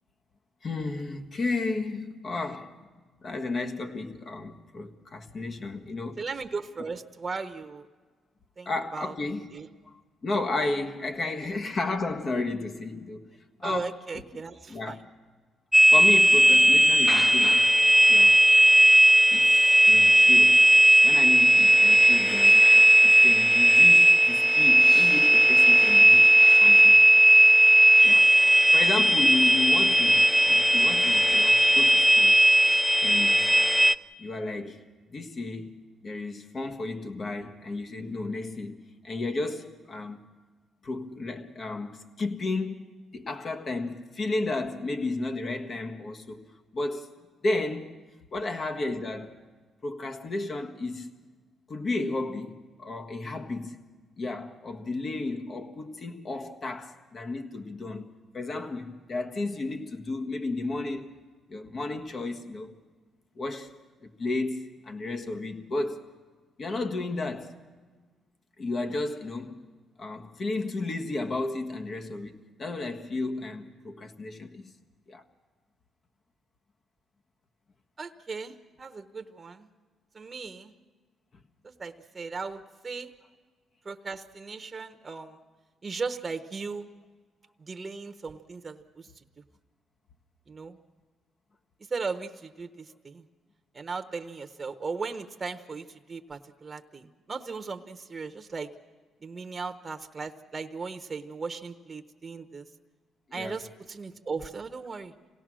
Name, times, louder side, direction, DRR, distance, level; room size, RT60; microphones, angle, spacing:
voice 1, 0.6-2.7 3.2-6.3 8.6-9.5 10.2-13.2 13.6-13.9 14.7-15.1 15.9-17.7 18.1-18.4 19.3-19.6 19.9-20.6 21.0-22.7 23.0-27.0 28.0-32.4 33.0-33.5 34.2-34.8 35.1-38.8 39.0-40.2 40.8-46.4 46.7-47.1 47.4-47.9 48.3-49.4 49.8-51.1 51.7-53.8 54.2-61.1 61.5-62.7 63.3-66.0 66.6-67.5 68.6-69.6 70.0-74.7 75.1-75.2 103.3-103.7, left 2 dB, 45° left, 1.6 m, -33 dB
voice 2, 6.2-7.9 8.6-9.1 9.5-9.7 11.2-11.3 13.6-15.0 30.1-30.2 48.4-48.5 78.0-78.5 78.8-79.7 80.1-80.7 81.6-83.1 83.8-85.4 85.8-86.9 87.7-89.1 90.5-90.8 91.9-93.2 93.7-98.7 99.2-102.6 103.3-105.1, right 4 dB, 30° right, 1.0 m, -37 dB
sound 1, 15.7-33.9, right 1 dB, 5° right, 0.6 m, -17 dB
26.5 x 17.5 x 6.2 m
cardioid pair, 90°, 0 cm